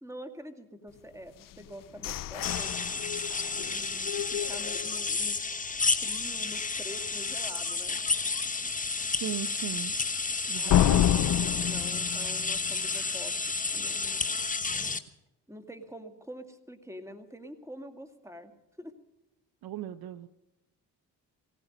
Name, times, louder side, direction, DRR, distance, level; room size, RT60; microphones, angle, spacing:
voice 1, 0.0-3.0 3.6-5.4 6.0-8.0 10.5-14.3 15.5-18.5 18.8-18.9, equal, 5° right, 7 dB, 2.3 m, -46 dB
sound 1, 1.4-5.3 5.7-5.8 6.2-6.6 7.0-7.1 7.6-7.7 10.7-13.4, left 12 dB, 50° left, 0.5 m, -29 dB
sound 2, 2.4-15.0, left 4 dB, 20° left, 1.2 m, -31 dB
voice 2, 9.2-9.9 10.5-11.2 19.6-20.3, right 10 dB, 60° right, 12 dB, 0.8 m, -37 dB
18.0 x 15.0 x 5.3 m, 0.95 s
supercardioid pair, 55°, 42 cm